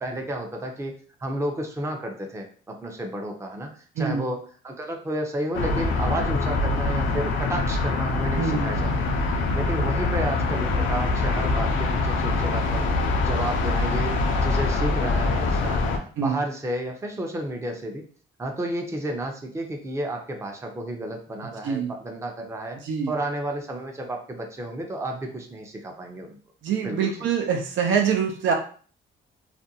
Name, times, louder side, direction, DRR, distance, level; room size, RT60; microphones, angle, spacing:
voice 1, 0.0-0.9 1.2-3.7 4.0-8.9 9.5-18.0 18.4-22.8 23.1-26.4 26.8-27.1, right 1 dB, 15° right, 2 dB, 0.5 m, -31 dB
sound 1, 5.5-16.0, left 3 dB, 80° left, 0.5 m, -24 dB
voice 2, 8.3-8.7 16.2-16.4 21.6-21.9 22.8-23.1 26.6-28.5, right 6 dB, 75° right, 2 dB, 0.6 m, -25 dB
2.5 x 2.2 x 2.7 m, 0.42 s
cardioid pair, 90°, 20 cm